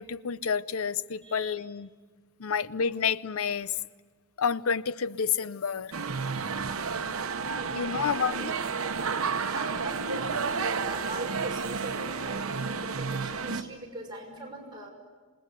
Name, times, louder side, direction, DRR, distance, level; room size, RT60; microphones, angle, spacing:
voice 1, 0.0-1.9 2.4-3.7 4.4-5.9 7.7-8.5, left 6 dB, 90° left, 0.6 m, -29 dB
voice 2, 1.2-1.6 6.8-8.6 9.1-14.9, right 1 dB, 20° right, 6.0 m, -41 dB
sound 1, 5.9-13.6, right 5 dB, 85° right, 1.0 m, -31 dB
27.0 x 20.0 x 8.2 m
head